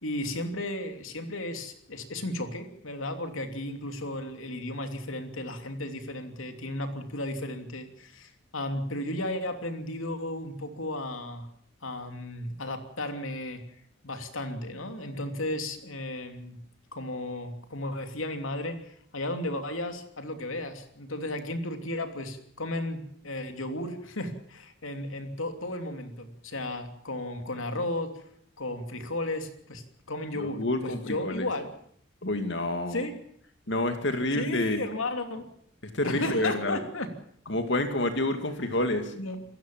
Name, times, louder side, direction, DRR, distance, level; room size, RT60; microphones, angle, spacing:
voice 1, 0.0-11.5 11.8-13.6 14.0-16.6 16.9-28.1 28.6-31.7 32.9-33.2 34.4-35.5 36.0-37.1 39.1-39.4, left 1 dB, 85° left, 6 dB, 2.9 m, -34 dB
voice 2, 30.3-31.5 32.2-33.0 33.7-34.9 35.9-36.8 37.5-39.1, left 1 dB, 60° left, 7 dB, 2.4 m, -28 dB
27.5 x 15.0 x 7.4 m, 0.68 s
head